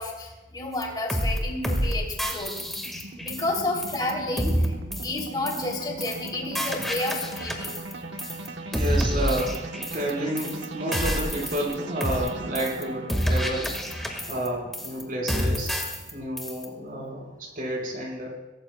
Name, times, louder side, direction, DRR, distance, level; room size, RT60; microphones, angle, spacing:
voice 1, 0.0-2.5 3.2-4.7 5.0-7.8, left 2 dB, 25° left, -1 dB, 3.2 m, -31 dB
sound 1, 0.8-0.9 1.1-1.4 1.6-1.9 2.2-3.6 3.8-4.1 4.4-4.7 4.9-5.2 5.5-5.7 6.0-6.3 6.6-7.9 8.2-8.5 8.7-10.1 10.4-10.6 10.9-11.7 12.0-12.3 12.6-12.8 13.1-14.5 14.7-15.0 15.3-16.1 16.4-16.7, equal, ahead, 1.8 m, -28 dB
sound 2, 1.4-17.2, right 2 dB, 75° right, 1.3 m, -40 dB
voice 2, 8.7-13.8 14.3-15.8 16.1-18.4, right 1 dB, 50° right, -1 dB, 5.0 m, -30 dB
23.0 x 17.0 x 2.4 m, 1.1 s
head